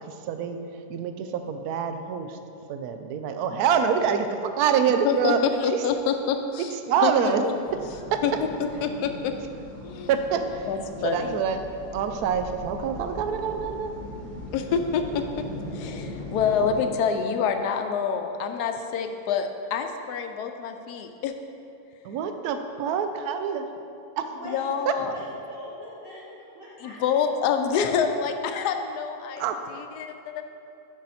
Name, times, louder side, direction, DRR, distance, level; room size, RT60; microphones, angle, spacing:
voice 1, 0.0-0.6 0.9-2.4 2.7-5.4 5.7-5.8 6.9-7.4 8.1-8.2 10.1-10.7 11.0-13.9 22.0-23.6 24.9-25.0 29.4-29.6, right 7 dB, 70° right, 8 dB, 1.0 m, -26 dB
voice 2, 5.6-6.7 7.0-7.3 8.2-8.3 8.6-9.3 9.8-10.1 10.7-11.4 14.5-15.2 15.7-21.3 24.5-25.1 26.8-29.4 29.7-30.4, left 6 dB, 75° left, 7 dB, 1.1 m, -27 dB
sound 1, 7.7-16.8, left 1 dB, ahead, 1.1 m, -39 dB
voice 3, 24.3-24.7 25.0-27.2, equal, 35° right, -10 dB, 1.4 m, -42 dB
8.3 x 6.1 x 4.2 m, 2.7 s
omnidirectional pair, 1.8 m